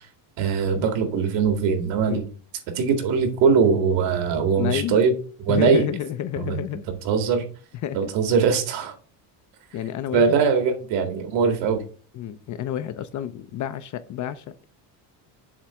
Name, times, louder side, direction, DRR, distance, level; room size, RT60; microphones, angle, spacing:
voice 1, 0.4-2.3 2.8-5.1 5.5-5.9 6.4-7.4 7.9-8.9 10.1-11.8, right 5 dB, 70° right, 6 dB, 2.1 m, -21 dB
voice 2, 4.5-5.0 5.5-6.8 7.8-8.0 9.7-10.4 12.1-14.4, left 10 dB, 45° left, 11 dB, 0.6 m, -29 dB
7.3 x 3.3 x 6.0 m, 0.38 s
cardioid pair, 130°, 44 cm